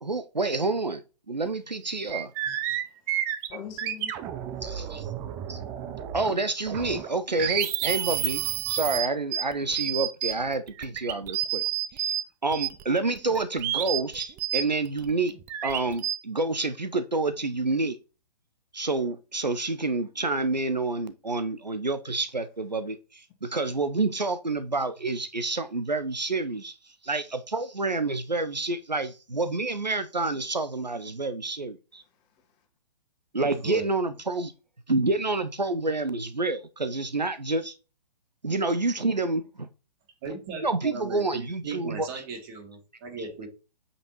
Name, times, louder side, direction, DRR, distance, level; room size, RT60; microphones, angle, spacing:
voice 1, 0.0-1.0 1.3-2.3 4.6-5.1 5.5-5.6 6.1-8.4 8.7-11.6 11.9-12.1 12.4-15.3 15.6-18.0 18.7-26.7 27.0-32.0 33.3-34.5 34.9-37.7 38.4-39.7 40.6-42.1, right 3 dB, 85° right, 0.8 m, -28 dB
sound 1, 1.4-1.5 1.8-6.4 6.7-12.2 12.5-16.1, right 11 dB, 10° right, 0.3 m, -30 dB
voice 2, 2.7-3.1 3.5-5.0 30.3-30.5 31.9-32.7, left 7 dB, 25° left, 1.7 m, -46 dB
voice 3, 40.2-43.5, right 4 dB, 35° right, 2.5 m, -37 dB
8.4 x 5.6 x 3.0 m
figure-of-eight pair, 120°, 21 cm